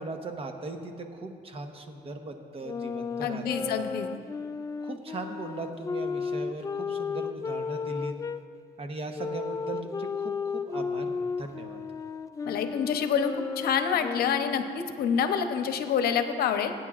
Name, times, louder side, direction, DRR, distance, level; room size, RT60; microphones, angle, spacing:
voice 1, 0.0-3.8 4.8-8.1 8.8-11.1 11.4-11.8, right 2 dB, 35° right, 5 dB, 1.0 m, -38 dB
sound 1, 2.6-8.4 9.1-14.8, left 5 dB, 20° left, 0.3 m, -34 dB
voice 2, 3.2-4.1 12.4-16.7, left 7 dB, 65° left, 8 dB, 0.8 m, -27 dB
22.0 x 9.1 x 2.5 m, 2.3 s
cardioid pair, 110°, 17 cm